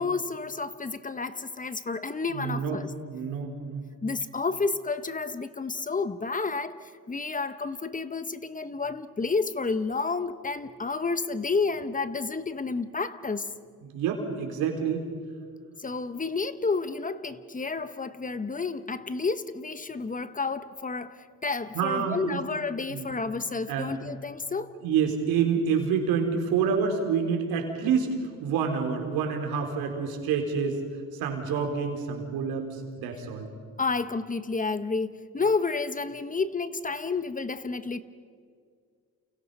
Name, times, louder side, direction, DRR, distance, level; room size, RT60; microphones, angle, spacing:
voice 1, 0.0-2.9 4.0-13.5 15.8-24.7 33.8-38.0, left 4 dB, 25° left, 1.1 m, -30 dB
voice 2, 2.3-3.8 13.8-15.1 21.7-22.4 22.9-23.1 23.7-23.9 24.8-30.8 31.1-33.5, right 6 dB, 85° right, 4.2 m, -28 dB
29.5 x 29.0 x 5.6 m
cardioid pair, 95°, 35 cm